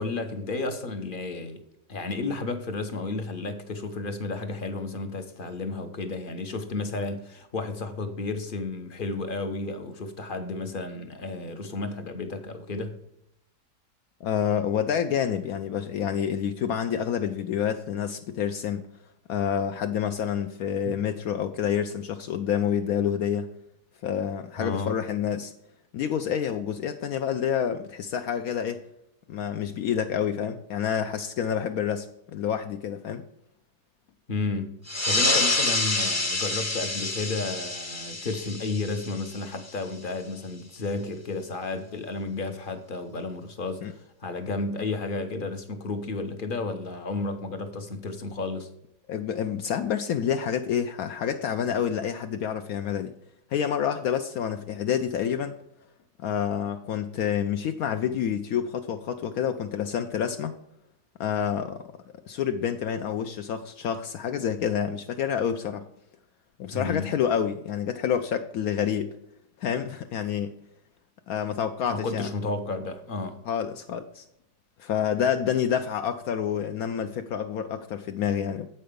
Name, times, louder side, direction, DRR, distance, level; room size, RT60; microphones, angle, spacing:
voice 1, 0.0-1.6 1.9-13.0 24.6-25.0 34.3-48.7 66.7-67.1 71.9-73.4, left 3 dB, 45° left, 7 dB, 0.8 m, -32 dB
voice 2, 14.2-18.8 19.3-23.5 24.0-25.5 25.9-28.8 29.3-33.2 43.8-43.9 49.1-53.1 53.5-55.6 56.2-60.5 61.2-61.8 62.3-65.8 66.6-69.1 69.6-70.5 71.3-72.3 73.5-74.3 74.8-78.7, left 8 dB, 70° left, 7 dB, 1.0 m, -28 dB
sound 1, 34.9-39.9, left 2 dB, 15° left, 0.5 m, -27 dB
7.7 x 5.6 x 5.1 m, 0.79 s
omnidirectional pair, 1.7 m